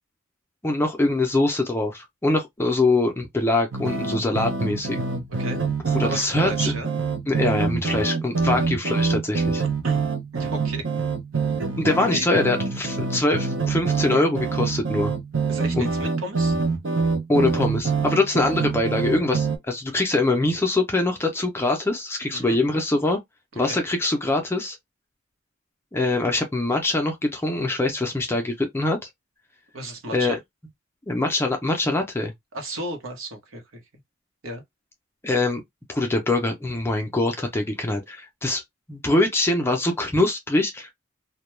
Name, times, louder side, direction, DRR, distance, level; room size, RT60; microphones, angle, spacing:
voice 1, 0.6-5.0 5.9-6.7 7.3-9.6 11.8-15.1 15.7-15.9 17.3-23.2 23.6-24.8 25.9-29.0 30.1-30.4 31.1-32.3 35.2-35.6 35.9-38.6 38.9-40.9, left 2 dB, 10° left, 0.4 m, -23 dB
sound 1, 3.7-19.6, right 4 dB, 65° right, 0.6 m, -26 dB
voice 2, 5.3-5.6 6.0-6.9 8.4-8.6 9.8-10.0 10.3-10.9 12.1-12.4 15.5-16.6 22.3-22.6 23.7-23.8 29.7-30.4 32.5-33.8 34.4-34.6, right 1 dB, 85° right, 0.9 m, -34 dB
2.2 x 2.2 x 3.0 m
head